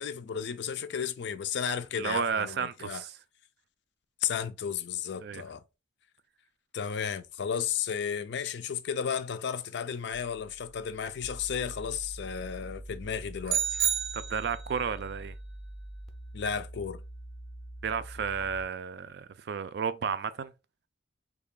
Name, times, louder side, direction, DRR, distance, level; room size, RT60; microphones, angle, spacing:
voice 1, 0.0-3.0 4.2-5.6 6.7-13.8 16.3-17.0, left 7 dB, 60° left, 0.4 m, -33 dB
voice 2, 2.0-3.2 5.2-5.4 14.1-15.3 17.8-20.5, right 6 dB, 55° right, 0.3 m, -32 dB
sound 1, 10.1-18.7, right 1 dB, ahead, 0.5 m, -45 dB
sound 2, 13.5-14.8, right 8 dB, 85° right, 0.7 m, -29 dB
3.3 x 2.3 x 3.6 m
head